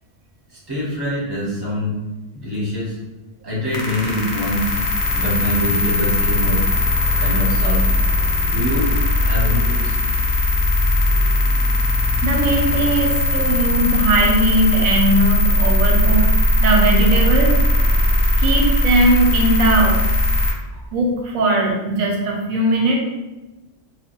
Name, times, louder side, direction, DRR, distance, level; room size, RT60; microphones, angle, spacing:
voice 1, 0.7-1.9 2.4-2.9 3.4-4.7 5.1-6.6 7.2-7.9 8.5-8.9 9.2-9.9, left 1 dB, 20° right, -7 dB, 0.9 m, -24 dB
sound 1, 3.7-20.5, left 1 dB, 65° left, 0.4 m, -18 dB
voice 2, 12.2-17.6 18.4-20.0 20.9-23.0, right 2 dB, 90° right, 0 dB, 1.0 m, -19 dB
2.3 x 2.2 x 2.9 m, 1.1 s
omnidirectional pair, 1.4 m